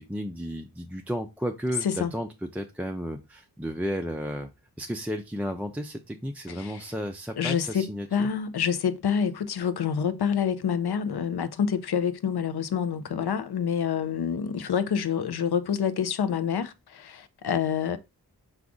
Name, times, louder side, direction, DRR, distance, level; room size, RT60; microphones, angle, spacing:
voice 1, 0.0-4.5 4.8-8.3, equal, 5° right, 0.3 m, -33 dB
voice 2, 7.4-18.0, left 7 dB, 90° left, 0.5 m, -27 dB
4.7 x 2.4 x 3.7 m
wide cardioid pair, 75°, 37 cm